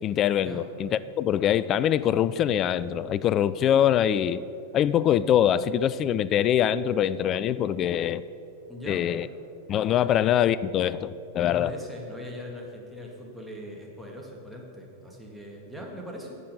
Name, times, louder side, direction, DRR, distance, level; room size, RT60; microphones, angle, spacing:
voice 1, 0.0-4.4 4.7-8.2 8.9-9.3 9.7-11.7, left 10 dB, 30° left, 16 dB, 0.3 m, -24 dB
voice 2, 8.7-9.1 9.9-10.1 11.4-16.3, left 1 dB, 5° right, -1 dB, 1.9 m, -40 dB
8.7 x 7.7 x 6.7 m, 2.8 s
figure-of-eight pair, 90°, 0 cm